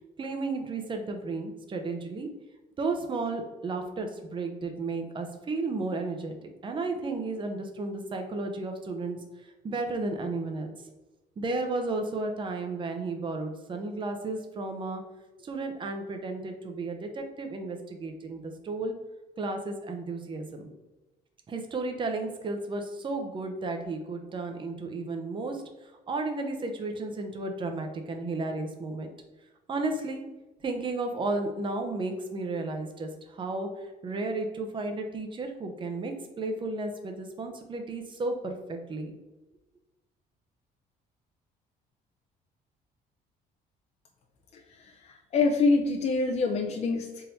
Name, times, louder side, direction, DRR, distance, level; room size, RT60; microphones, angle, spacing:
voice 1, 0.2-2.3 2.8-6.4 6.6-9.2 9.6-10.7 11.4-15.0 15.4-18.9 19.4-20.7 21.5-25.6 26.1-29.1 29.7-30.2 30.6-39.1, right 3 dB, 30° right, 5 dB, 0.7 m, -33 dB
voice 2, 44.5-47.2, left 3 dB, 40° left, 2 dB, 0.5 m, -26 dB
3.7 x 2.7 x 4.3 m, 1.1 s
cardioid pair, 110°, 17 cm